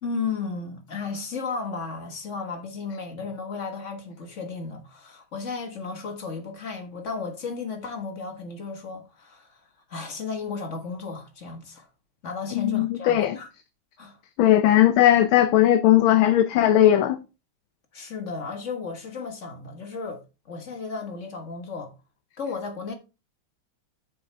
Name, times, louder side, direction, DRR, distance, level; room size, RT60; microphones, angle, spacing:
voice 1, 0.0-9.6 9.9-11.9 12.2-13.5 14.0-14.2 17.9-21.9 22.4-22.9, left 4 dB, 40° left, 1.6 m, -34 dB
voice 2, 12.5-13.4 14.4-17.2, left 12 dB, 85° left, 1.6 m, -18 dB
8.7 x 6.4 x 3.3 m
omnidirectional pair, 2.2 m